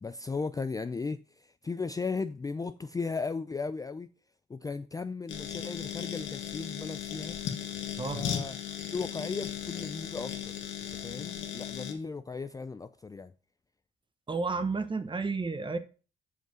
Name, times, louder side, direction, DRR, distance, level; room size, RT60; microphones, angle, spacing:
voice 1, 0.0-4.1 4.5-7.4 8.1-8.6 8.9-10.5 10.9-13.3, left 4 dB, 20° left, 0.4 m, -36 dB
sound 1, 5.3-11.9, left 9 dB, 75° left, 1.6 m, -37 dB
voice 2, 14.3-15.8, right 4 dB, 25° right, 1.1 m, -31 dB
7.5 x 5.5 x 6.2 m
cardioid pair, 90°, 20 cm